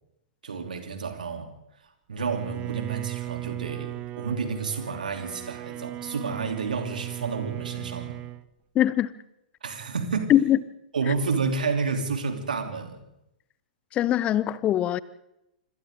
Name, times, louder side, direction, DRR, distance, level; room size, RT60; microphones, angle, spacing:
voice 1, 0.4-1.5 2.1-8.2 9.6-10.3 10.9-13.0, right 5 dB, 70° right, 3.3 m, -30 dB
Bowed string instrument, 2.2-8.5, right 16 dB, 30° right, 0.6 m, -37 dB
voice 2, 8.7-9.1 10.3-10.6 13.9-15.0, left 12 dB, 25° left, 0.8 m, -21 dB
26.5 x 25.5 x 3.8 m
figure-of-eight pair, 105°, 5 cm